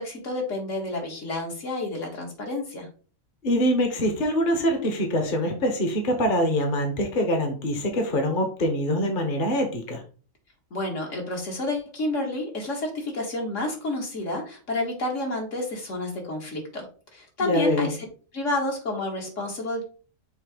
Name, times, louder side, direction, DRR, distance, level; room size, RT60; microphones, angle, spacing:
voice 1, 0.0-2.9 10.7-16.9 17.1-18.0 18.3-19.8, left 2 dB, 65° left, 0 dB, 2.1 m, -30 dB
voice 2, 3.4-10.0 17.4-17.9, equal, 40° left, 4 dB, 1.2 m, -24 dB
6.6 x 2.9 x 5.0 m, 0.38 s
omnidirectional pair, 1.4 m